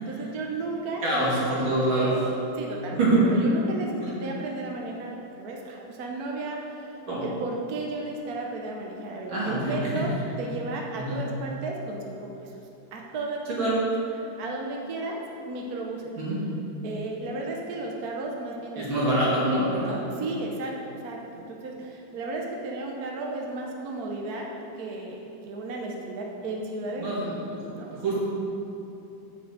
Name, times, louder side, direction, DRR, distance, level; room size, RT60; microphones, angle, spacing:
voice 1, 0.0-2.2 2.6-3.0 3.2-6.8 7.2-10.1 10.4-12.3 12.9-13.4 14.4-15.2 15.5-16.1 16.8-18.8 19.8-24.5 24.8-27.2 27.8-27.9, right 2 dB, 60° right, 0 dB, 1.2 m, -34 dB
voice 2, 1.0-2.3 2.9-3.3 4.0-4.1 7.1-7.3 9.3-9.9 10.9-11.2 13.5-13.8 16.2-16.4 18.7-20.0 27.0-28.2, right 2 dB, 80° right, -8 dB, 3.3 m, -25 dB
7.5 x 6.1 x 7.3 m, 2.9 s
omnidirectional pair, 2.1 m